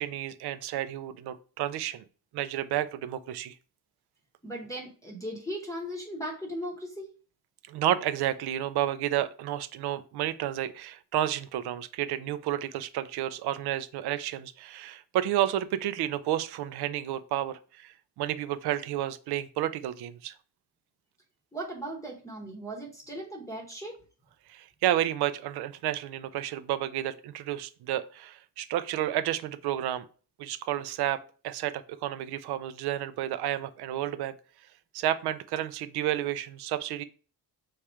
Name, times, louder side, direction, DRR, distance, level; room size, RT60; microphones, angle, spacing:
voice 1, 0.0-2.0 2.3-3.6 7.7-20.3 24.5-30.1 30.4-34.3 34.9-37.0, right 12 dB, 70° right, 14 dB, 0.5 m, -31 dB
voice 2, 4.4-7.1 21.5-24.0, right 1 dB, 10° left, 0 dB, 0.9 m, -37 dB
3.6 x 3.2 x 4.4 m, 0.39 s
cardioid pair, 135°, 40 cm